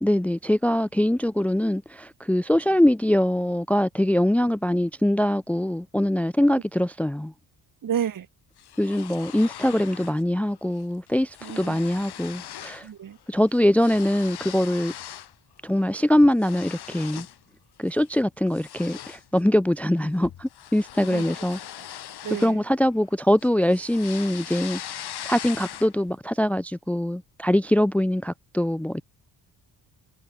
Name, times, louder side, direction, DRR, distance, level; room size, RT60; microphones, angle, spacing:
voice 1, 0.0-7.3 8.8-12.9 13.3-14.9 15.6-17.3 17.8-21.6 22.4-24.8 25.3-29.0, left 1 dB, 5° left, 0.6 m, -23 dB
voice 2, 7.8-8.3 11.4-11.8 12.8-13.2 21.1-21.3 22.2-22.6, right 9 dB, 50° right, 1.5 m, -30 dB
sound 1, 8.6-10.2 10.6-10.8 11.1-12.9 13.2-15.3 15.8-17.4 17.9-18.1 18.5-23.1 23.4-26.1, left 11 dB, 65° left, 1.7 m, -40 dB
cardioid pair, 105°, 42 cm